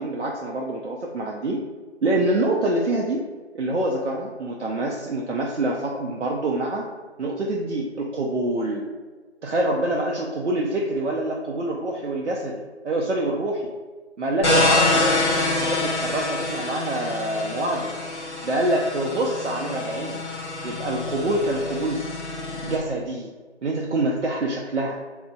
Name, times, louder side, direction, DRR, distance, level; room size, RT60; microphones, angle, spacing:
voice 1, 0.0-1.6 2.0-3.2 3.5-6.9 7.2-8.8 9.4-13.6 14.2-17.9 18.4-20.2 20.6-22.2 22.6-23.3 23.6-25.0, right 1 dB, 80° right, -2 dB, 0.5 m, -26 dB
sound 1, 14.4-22.8, left 2 dB, 80° left, 1.0 m, -26 dB
4.3 x 2.0 x 2.3 m, 1.4 s
figure-of-eight pair, 180°, 34 cm